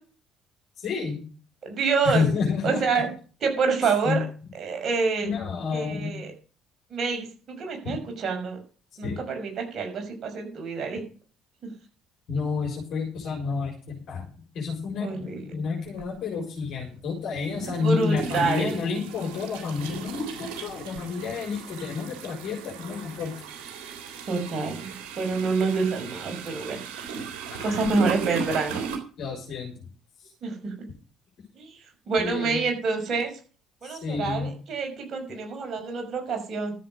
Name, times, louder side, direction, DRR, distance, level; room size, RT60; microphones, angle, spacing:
voice 1, 0.8-1.2 2.0-3.0 4.0-4.2 5.2-6.1 7.8-8.0 9.0-9.2 12.3-14.3 14.5-23.3 27.5-27.8 29.2-29.7 32.2-32.6 33.8-34.5, left 5 dB, 55° left, 0 dB, 4.7 m, -30 dB
voice 2, 1.6-2.3 2.6-3.1 3.4-4.2 4.5-5.3 5.7-6.3 6.9-8.6 9.0-11.0 11.6-11.7 15.0-15.4 17.6-18.8 24.3-26.8 27.6-28.9 30.4-30.7 31.6-33.3 33.8-36.7, right 4 dB, 45° right, 3 dB, 6.0 m, -27 dB
sound 1, 15.9-16.1 17.4-29.0, right 5 dB, 65° right, 3.4 m, -37 dB
13.5 x 7.6 x 6.4 m, 0.38 s
figure-of-eight pair, 50°, 0 cm